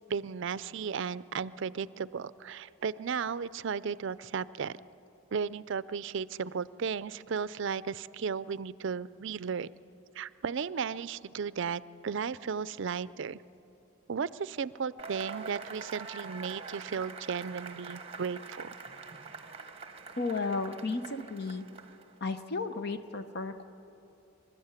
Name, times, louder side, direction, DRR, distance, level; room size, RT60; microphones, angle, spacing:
voice 1, 0.1-4.8 5.3-9.7 10.2-13.4 14.1-18.8, right 6 dB, 60° right, 17 dB, 0.4 m, -35 dB
Cheering / Applause / Crowd, 15.0-22.2, right 5 dB, 30° right, 1.1 m, -45 dB
voice 2, 20.2-21.6 22.2-23.7, left 3 dB, 50° left, 9 dB, 0.8 m, -33 dB
26.0 x 13.0 x 9.0 m, 2.9 s
head